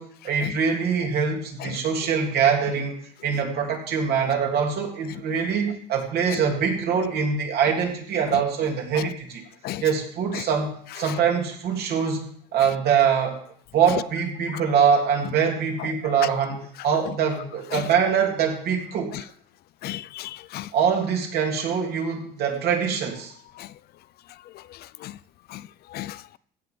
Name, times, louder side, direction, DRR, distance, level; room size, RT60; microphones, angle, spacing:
voice 1, 0.0-9.4 9.8-13.4 13.7-19.2 20.7-23.3, right 7 dB, 70° right, 3.1 m, -24 dB
voice 2, 19.8-20.7 25.0-25.1 25.5-25.6 25.9-26.4, left 15 dB, 70° left, 0.5 m, -33 dB
15.5 x 5.9 x 6.8 m
cardioid pair, 110°, 17 cm